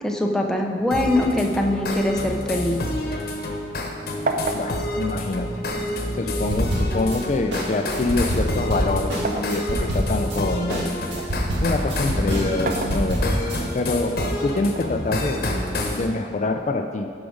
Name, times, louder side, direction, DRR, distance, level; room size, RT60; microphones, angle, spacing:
voice 1, 0.0-2.8, left 1 dB, 5° left, 1 dB, 0.6 m, -22 dB
sound 1, 0.9-16.1, left 1 dB, 55° left, 1.0 m, -28 dB
sound 2, 2.7-3.9 4.3-6.2 7.1-9.6 10.1-11.4 12.4-13.6 14.7-15.7, right 2 dB, 50° right, 0.6 m, -32 dB
voice 2, 4.5-5.5 6.1-10.9 11.2-13.2 13.7-17.1, left 3 dB, 40° left, 5 dB, 0.4 m, -26 dB
sound 3, 6.5-7.2 7.5-10.4 10.7-13.6, equal, 80° right, 1.9 m, -26 dB
12.0 x 5.0 x 5.0 m, 2.3 s
head